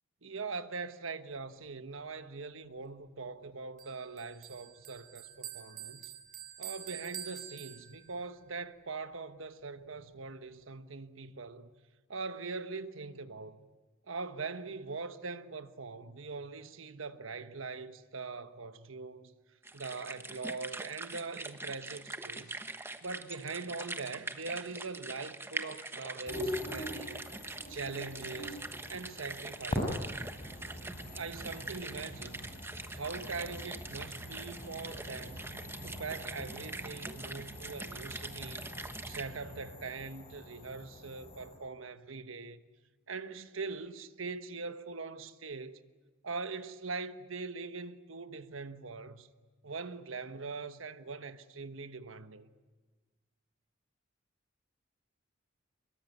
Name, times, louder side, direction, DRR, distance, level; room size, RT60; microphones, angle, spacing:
voice 1, 0.2-6.1 6.6-11.7 12.1-13.6 14.1-19.3 19.7-22.6 23.0-27.3 27.7-30.1 31.1-32.5 32.9-35.5 35.8-38.7 39.0-42.6 43.1-45.8 46.2-49.3 49.6-52.5, right 4 dB, 80° right, 1.2 m, -42 dB
Bell, 3.8-8.3, right 10 dB, 45° right, 3.4 m, -47 dB
sound 1, 19.6-39.2, right 2 dB, 10° right, 1.2 m, -43 dB
sound 2, 26.2-41.6, left 1 dB, 30° left, 7.4 m, -43 dB
25.0 x 21.5 x 9.6 m
head